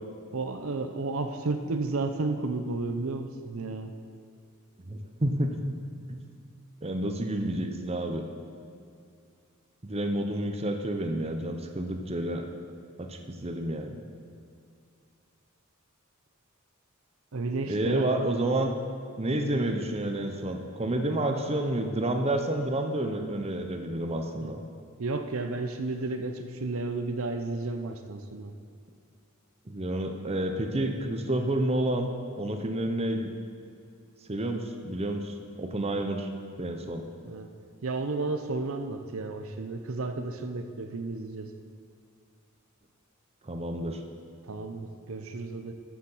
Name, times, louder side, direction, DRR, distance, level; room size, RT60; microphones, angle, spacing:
voice 1, 0.3-3.9 17.3-18.1 24.4-24.5 25.0-28.5 37.2-37.5 37.8-41.5 44.4-45.7, right 3 dB, 70° right, 6 dB, 0.7 m, -32 dB
voice 2, 4.9-5.6 6.1-6.2 6.8-8.3 9.8-12.5 13.0-14.0 17.7-18.8 19.2-24.6 29.7-32.1 32.4-33.3 34.3-36.3 36.6-37.0 43.4-44.0, right 1 dB, 30° right, 5 dB, 0.8 m, -29 dB
13.0 x 7.2 x 5.6 m, 2.4 s
head